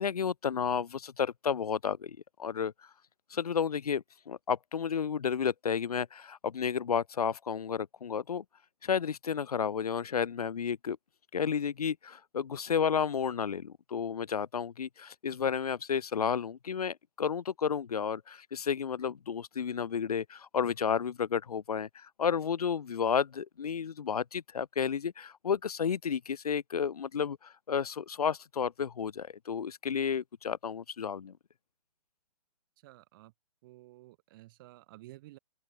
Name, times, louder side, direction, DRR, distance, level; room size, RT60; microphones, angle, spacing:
voice 1, 0.0-2.7 3.3-8.4 8.8-11.0 11.3-31.3, left 7 dB, 75° left, 2.4 m, -32 dB
voice 2, 32.8-33.3 33.6-35.4, right 18 dB, 35° right, 5.5 m, -53 dB
open air
hypercardioid pair, 155°, 20 cm